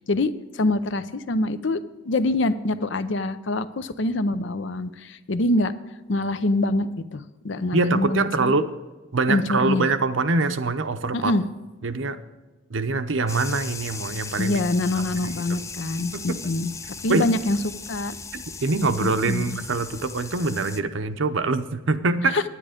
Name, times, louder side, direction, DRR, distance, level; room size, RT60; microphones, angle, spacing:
voice 1, 0.1-1.8 2.0-5.7 6.1-8.5 9.3-9.9 11.1-11.4 14.4-16.7 17.0-17.6 17.9-18.2 19.0-19.6 22.3-22.4, left 2 dB, 65° left, 13 dB, 0.6 m, -25 dB
voice 2, 7.7-8.7 9.1-11.3 11.8-12.2 12.7-14.6 14.9-15.3 16.1-16.4 17.1-17.3 18.6-22.4, right 3 dB, 70° right, 10 dB, 0.7 m, -24 dB
sound 1, 13.3-20.8, left 4 dB, 15° left, 0.4 m, -38 dB
10.0 x 9.9 x 5.1 m, 1.2 s
head